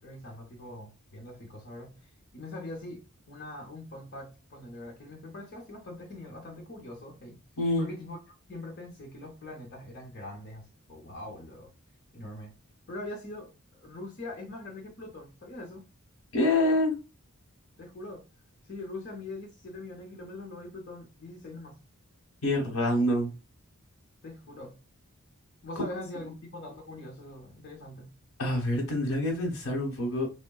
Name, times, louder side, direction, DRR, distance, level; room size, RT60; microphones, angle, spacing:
voice 1, 0.0-2.0 2.3-7.4 7.8-8.2 8.5-11.7 12.1-12.5 12.9-15.8 17.8-18.3 18.6-21.8 24.2-24.8 25.6-28.1, left 2 dB, 45° left, 0.7 m, -42 dB
voice 2, 7.6-7.9 16.3-16.9 22.4-23.3 28.4-30.3, left 1 dB, 65° left, 1.0 m, -26 dB
3.4 x 2.1 x 2.2 m
head